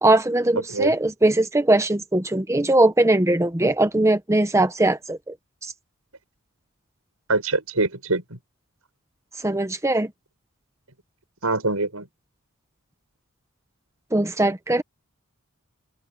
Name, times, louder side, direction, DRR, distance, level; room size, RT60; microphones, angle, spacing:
voice 1, 0.0-5.3 9.4-10.1 14.1-14.8, right 2 dB, 15° right, 0.8 m, -20 dB
voice 2, 7.3-8.4 11.4-12.1, right 3 dB, 90° right, 5.9 m, -24 dB
open air
head